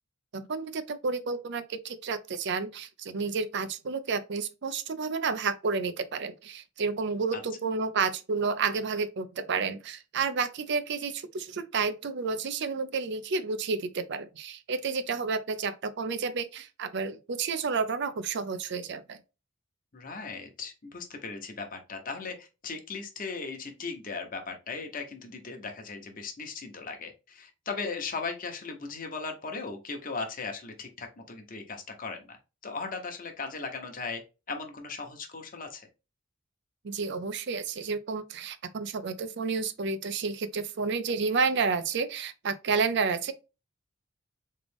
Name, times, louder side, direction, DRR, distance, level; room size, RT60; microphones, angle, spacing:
voice 1, 0.3-19.2 36.8-43.3, right 4 dB, 60° right, 0.5 m, -30 dB
voice 2, 19.9-32.4 32.6-34.2 34.5-35.9, left 4 dB, 45° left, 1.0 m, -37 dB
3.7 x 3.3 x 3.5 m
head